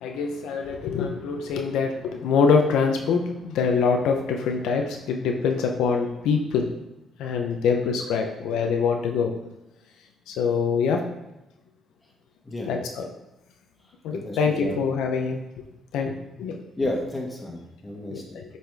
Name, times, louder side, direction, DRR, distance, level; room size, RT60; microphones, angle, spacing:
voice 1, 0.0-6.7 7.2-9.3 10.3-11.0 12.7-13.1 14.0-15.4 15.9-16.5 18.1-18.4, left 5 dB, 90° left, 3 dB, 0.6 m, -24 dB
voice 2, 14.1-14.7 16.8-18.4, left 1 dB, 20° left, -2 dB, 1.9 m, -31 dB
7.7 x 4.2 x 3.4 m, 0.94 s
cardioid pair, 90°, 0 cm